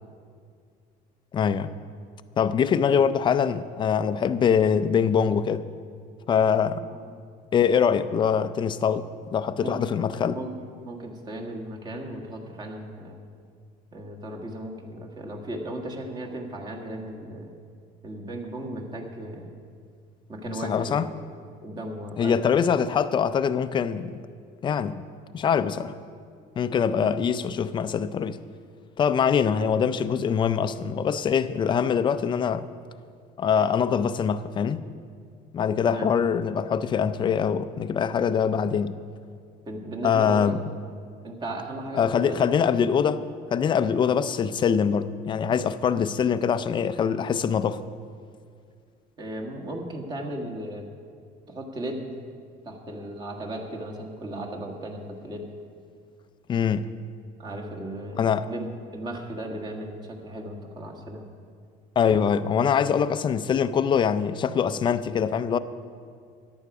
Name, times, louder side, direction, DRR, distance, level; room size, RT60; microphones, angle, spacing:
voice 1, 1.3-1.7 2.4-5.7 6.3-6.9 7.5-10.4 20.5-21.1 22.2-24.2 24.6-25.0 25.3-26.0 26.6-28.4 29.0-32.7 33.4-34.8 35.5-39.0 40.0-40.6 41.9-43.2 43.5-47.8 56.5-56.9 58.2-58.5 62.0-65.6, left 7 dB, 30° left, 0.5 m, -23 dB
voice 2, 9.6-9.9 10.3-10.5 10.8-13.2 13.9-17.5 18.0-19.5 20.3-21.1 21.4-22.4 26.9-27.1 29.6-29.7 35.8-36.1 39.6-40.4 41.2-42.4 43.1-43.2 44.1-44.2 49.2-50.9 51.5-52.1 52.6-55.5 57.4-61.3, right 1 dB, 25° right, 1.7 m, -36 dB
14.0 x 10.5 x 4.9 m
cardioid pair, 140°, 17 cm